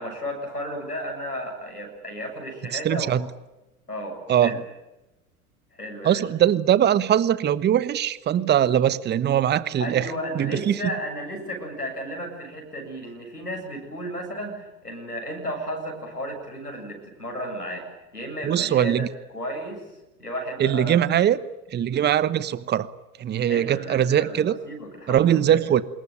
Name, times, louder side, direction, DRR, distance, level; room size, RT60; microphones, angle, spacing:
voice 1, 0.0-3.1 3.9-4.6 5.7-6.2 9.8-17.9 18.1-19.1 19.3-19.9 20.2-21.0 23.4-25.6, equal, 90° left, 1 dB, 7.4 m, -33 dB
voice 2, 2.8-3.2 4.3-4.6 6.0-10.1 10.3-10.8 18.4-19.1 20.6-21.4 21.7-22.9 23.2-24.5 25.1-25.8, right 10 dB, 20° right, 17 dB, 1.1 m, -21 dB
26.0 x 21.5 x 9.1 m, 1.0 s
figure-of-eight pair, 85°, 45 cm